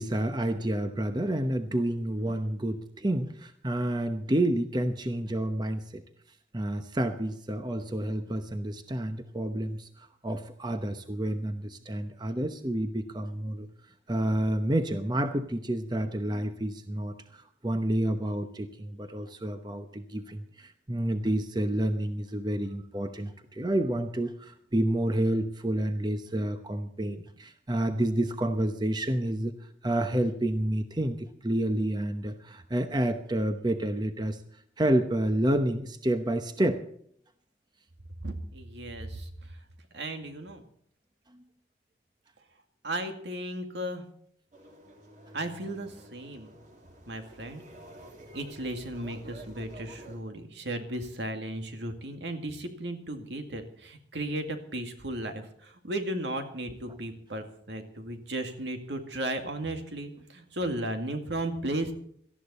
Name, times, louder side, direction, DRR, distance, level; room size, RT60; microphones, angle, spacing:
voice 1, 0.0-6.0 6.5-13.7 14.1-34.4 34.8-36.8, right 1 dB, 25° right, 7 dB, 0.9 m, -29 dB
voice 2, 38.2-39.6 39.9-40.6 42.8-44.0 45.3-46.6 47.1-47.6 48.3-61.9, right 1 dB, 75° right, 6 dB, 2.1 m, -35 dB
sound 1, 44.5-50.2, right 1 dB, 45° right, 2.9 m, -49 dB
18.5 x 13.5 x 4.2 m, 0.65 s
head